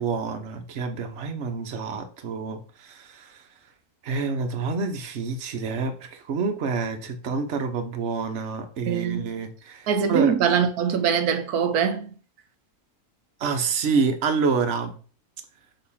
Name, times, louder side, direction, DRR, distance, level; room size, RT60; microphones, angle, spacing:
voice 1, 0.0-2.6 2.9-3.3 4.0-9.8 10.1-10.3 13.4-14.9, right 4 dB, 55° right, 1.2 m, -27 dB
voice 2, 8.9-9.3 9.9-12.1, right 7 dB, 85° right, 1.2 m, -23 dB
6.5 x 3.1 x 5.6 m
omnidirectional pair, 1.6 m